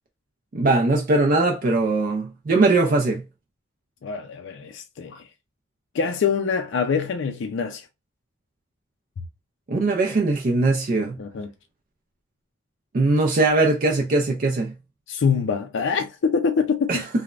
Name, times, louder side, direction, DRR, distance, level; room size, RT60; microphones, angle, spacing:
voice 1, 0.5-3.2 9.7-11.2 12.9-14.7 16.9-17.0, right 3 dB, 45° right, 0.4 m, -20 dB
voice 2, 4.0-5.3 5.9-7.9 11.2-11.5 15.1-17.1, left 6 dB, 75° left, 0.4 m, -25 dB
3.2 x 2.0 x 2.4 m
head